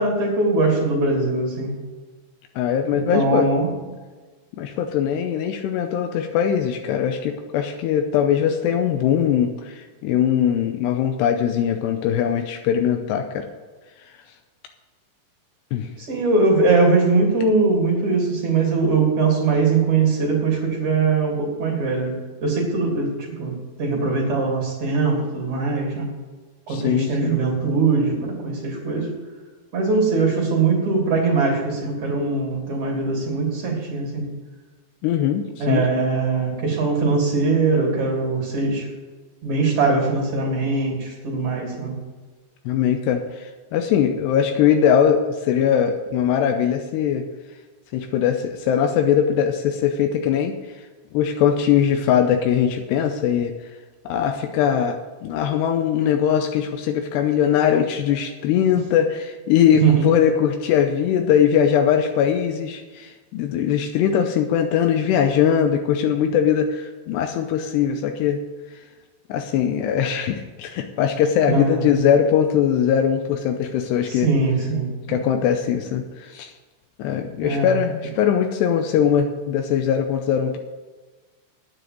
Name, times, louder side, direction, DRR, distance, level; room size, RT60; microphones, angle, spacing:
voice 1, 0.0-1.8 2.9-3.7 16.0-26.1 26.7-29.1 29.7-34.3 35.6-38.9 39.4-42.0 59.8-60.1 71.5-72.0 74.0-74.9 77.4-77.8, right 3 dB, 45° right, 0 dB, 3.8 m, -21 dB
voice 2, 2.6-3.5 4.6-13.5 15.7-15.9 26.7-27.3 35.0-35.9 42.7-47.3 47.9-50.5 51.1-53.5 54.1-68.4 69.3-74.3 75.1-76.5 77.0-80.6, left 8 dB, 85° left, 5 dB, 2.7 m, -21 dB
9.6 x 7.9 x 7.6 m, 1.3 s
omnidirectional pair, 5.2 m